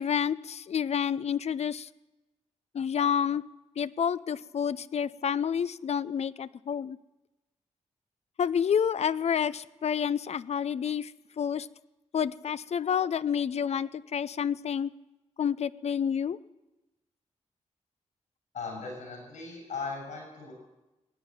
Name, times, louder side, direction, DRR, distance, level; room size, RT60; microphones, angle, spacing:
voice 1, 0.0-1.9 2.7-3.4 3.8-7.0 8.4-11.1 11.4-11.7 12.1-14.9 15.4-16.4, left 8 dB, 60° left, 18 dB, 0.5 m, -29 dB
voice 2, 18.5-20.5, left 4 dB, 85° left, 0 dB, 7.2 m, -38 dB
17.5 x 9.5 x 8.7 m, 1.0 s
cardioid pair, 60°, 12 cm